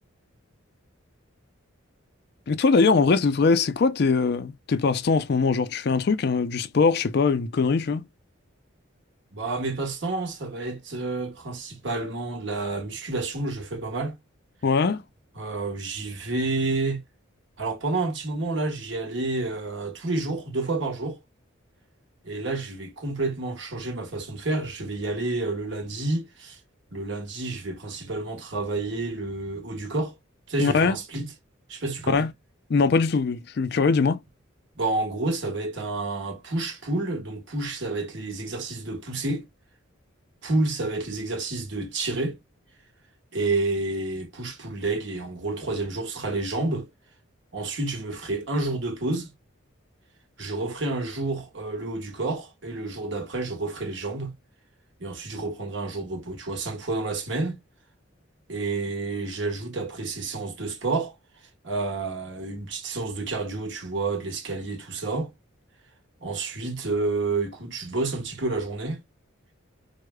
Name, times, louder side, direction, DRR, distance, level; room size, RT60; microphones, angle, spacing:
voice 1, 2.5-8.0 14.6-15.0 30.6-31.0 32.1-32.3 32.7-34.2, left 4 dB, 50° left, 0.4 m, -22 dB
voice 2, 9.3-14.1 15.3-17.0 17.6-21.2 22.2-26.6 26.9-30.1 30.5-31.3 31.7-32.3 34.7-39.4 40.4-42.4 43.3-46.9 47.5-49.3 50.4-54.3 55.0-57.6 58.5-61.1 61.6-65.3 66.2-69.0, right 2 dB, 60° right, 1.2 m, -29 dB
4.7 x 2.1 x 2.2 m
head